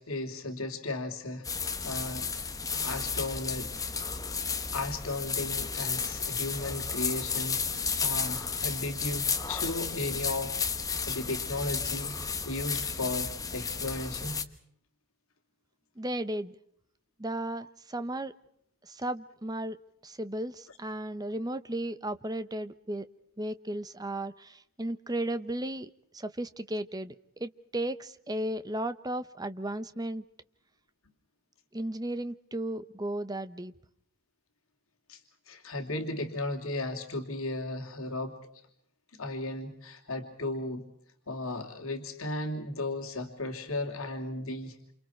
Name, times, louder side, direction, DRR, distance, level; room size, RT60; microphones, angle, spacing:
voice 1, 0.0-1.5 1.8-2.3 2.7-3.7 4.7-10.7 11.1-14.4 35.1-35.2 35.5-38.4 39.2-40.9 41.3-44.8, left 2 dB, 70° left, 3 dB, 2.9 m, -35 dB
sound 1, 1.4-14.4, left 5 dB, 15° left, 1.1 m, -33 dB
voice 2, 16.0-16.5 17.2-18.3 18.8-19.8 20.0-23.1 23.4-27.1 27.4-30.2 31.7-33.7, right 1 dB, 15° right, 12 dB, 0.9 m, -35 dB
29.0 x 28.5 x 4.5 m, 0.67 s
head